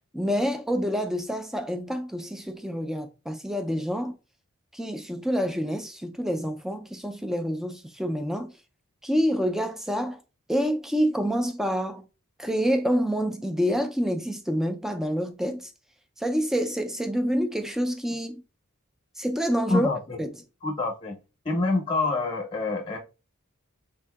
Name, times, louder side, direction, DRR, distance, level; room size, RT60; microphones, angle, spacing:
voice 1, 0.1-4.1 4.7-8.5 9.0-10.2 10.5-12.0 12.4-15.7 16.2-18.4 19.2-19.9 20.2-20.3, equal, ahead, 0.3 m, -27 dB
voice 2, 19.7-20.2 20.6-21.2 21.4-23.0, left 3 dB, 25° left, 0.8 m, -26 dB
3.6 x 2.6 x 2.3 m
head